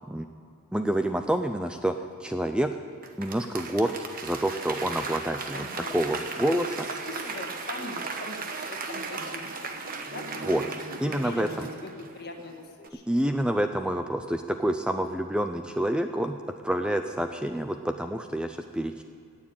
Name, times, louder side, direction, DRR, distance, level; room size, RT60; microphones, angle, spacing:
voice 1, 0.7-2.8 3.2-3.9 4.2-5.7 5.9-6.9 10.5-10.6 11.0-11.7 13.1-16.4 16.6-19.0, right 1 dB, 5° right, 7 dB, 0.4 m, -28 dB
Applause / Crowd, 3.0-12.5 12.8-12.9, right 4 dB, 40° right, 1.1 m, -36 dB
voice 2, 5.5-6.0 6.5-6.6 6.9-10.6 11.0-11.5 11.8-13.0, left 2 dB, 45° left, 3 dB, 1.7 m, -41 dB
18.0 x 7.3 x 8.8 m, 2.5 s
head